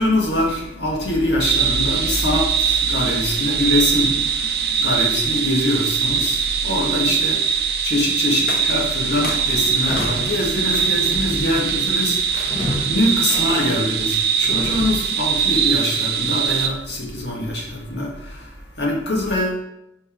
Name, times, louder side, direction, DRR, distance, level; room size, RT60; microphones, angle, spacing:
voice 1, 0.0-12.6 12.8-19.6, left 1 dB, 70° left, -2 dB, 1.7 m, -23 dB
sound 1, 1.4-16.7, right 7 dB, 55° right, 0.6 m, -22 dB
sound 2, 8.4-10.4 10.7-11.1 11.5-11.9 12.3-12.8 13.3-13.7, left 3 dB, 55° left, 0.6 m, -35 dB
Sliding door / Squeak, 9.0-15.1, left 1 dB, 30° left, 1.3 m, -32 dB
5.5 x 4.6 x 4.4 m, 0.82 s
head